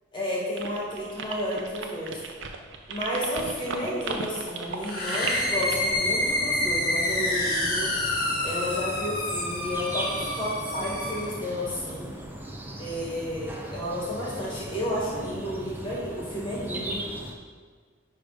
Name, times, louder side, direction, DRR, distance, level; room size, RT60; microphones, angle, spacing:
voice 1, 0.1-2.2 2.9-7.9 8.4-12.1 12.8-17.1, left 1 dB, 25° left, -6 dB, 2.1 m, -31 dB
sound 1, 0.6-5.9, right 5 dB, 70° right, 0.8 m, -35 dB
sound 2, 4.8-11.4, left 1 dB, 45° left, 1.7 m, -28 dB
sound 3, 5.3-17.3, right 1 dB, 10° right, 0.6 m, -38 dB
10.0 x 3.7 x 5.1 m, 1.5 s
head